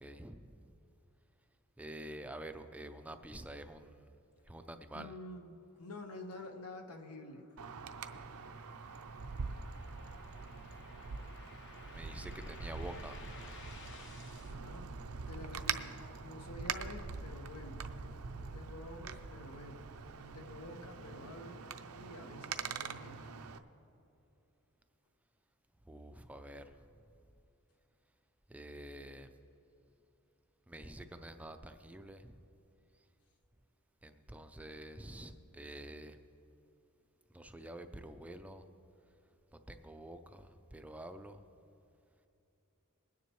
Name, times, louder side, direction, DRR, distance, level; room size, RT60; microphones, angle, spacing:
voice 1, 0.0-0.7 1.8-4.1 4.5-5.1 11.9-13.2 25.9-26.7 28.5-29.3 30.7-32.4 34.0-36.2 37.3-38.6 39.7-41.4, right 1 dB, 5° right, 8 dB, 0.4 m, -48 dB
voice 2, 4.9-7.5 8.2-8.3 14.4-14.9 15.3-17.9 18.3-19.9 20.2-21.6 21.9-23.3, left 1 dB, 80° left, 4 dB, 1.2 m, -49 dB
sound 1, 7.0-14.5, left 3 dB, 55° left, 1.1 m, -57 dB
Wind, 7.6-23.6, right 5 dB, 70° right, 0.6 m, -44 dB
21.5 x 9.7 x 3.1 m, 2.8 s
head